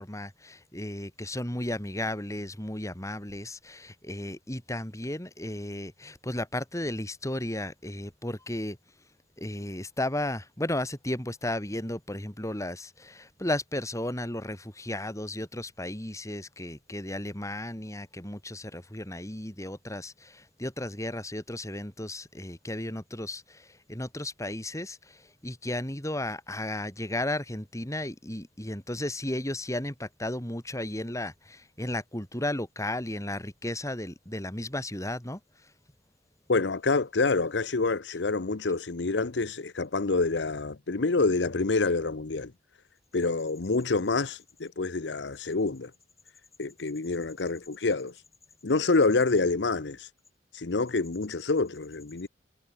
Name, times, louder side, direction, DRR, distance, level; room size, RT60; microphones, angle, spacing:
voice 1, 0.0-8.8 9.4-35.4, left 1 dB, 20° left, 4.1 m, -34 dB
voice 2, 36.5-42.5 43.1-45.9 46.6-48.1 48.6-50.1 50.5-52.3, left 3 dB, 75° left, 0.9 m, -27 dB
head